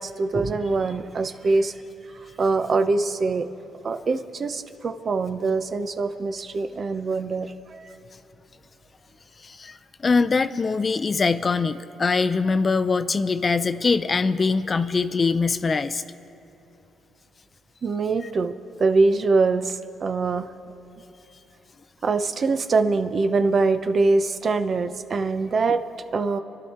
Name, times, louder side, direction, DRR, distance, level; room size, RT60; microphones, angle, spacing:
voice 1, 0.0-1.7 2.1-3.5 3.8-8.0 17.8-20.5 22.0-25.8 26.1-26.4, right 3 dB, 45° right, 9 dB, 0.8 m, -23 dB
voice 2, 9.4-16.0, left 4 dB, 35° left, 12 dB, 0.6 m, -23 dB
28.0 x 11.5 x 4.4 m, 3.0 s
cardioid pair, 90°, 0 cm